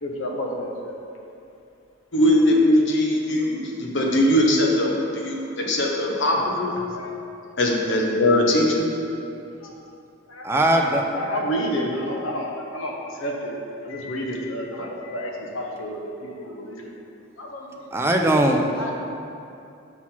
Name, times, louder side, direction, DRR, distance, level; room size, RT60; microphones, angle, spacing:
voice 1, 0.0-1.0 6.3-6.4 6.8-7.2 9.6-9.8 10.3-10.5 11.1-16.9 17.4-17.9 18.8-18.9, equal, 85° left, 0 dB, 1.0 m, -30 dB
voice 2, 2.1-6.8 7.6-8.9, left 1 dB, 60° left, -1 dB, 1.0 m, -20 dB
voice 3, 10.4-11.0 17.9-18.9, right 1 dB, 10° right, 2 dB, 0.5 m, -20 dB
6.0 x 4.4 x 5.7 m, 2.6 s
head